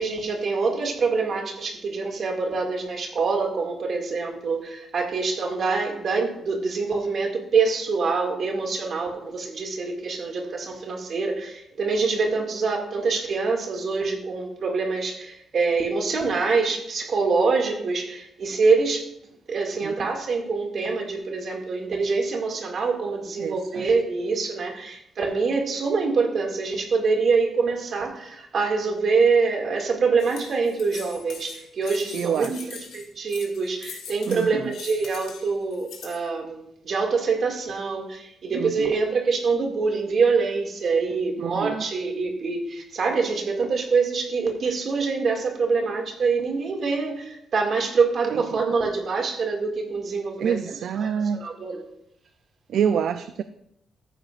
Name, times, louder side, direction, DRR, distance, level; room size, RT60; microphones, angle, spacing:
voice 1, 0.0-19.1 19.5-32.6 32.9-50.6 51.0-51.9, right 4 dB, 45° right, 2 dB, 2.1 m, -25 dB
voice 2, 19.8-20.1 23.4-23.9 32.1-32.7 34.3-34.7 38.5-38.9 41.4-41.8 48.3-48.6 50.4-51.4 52.7-53.4, right 8 dB, 65° right, 11 dB, 0.3 m, -27 dB
sound 1, 30.2-36.2, left 6 dB, 80° left, 2.3 m, -42 dB
14.0 x 9.7 x 2.5 m, 0.78 s
cardioid pair, 145°, 0 cm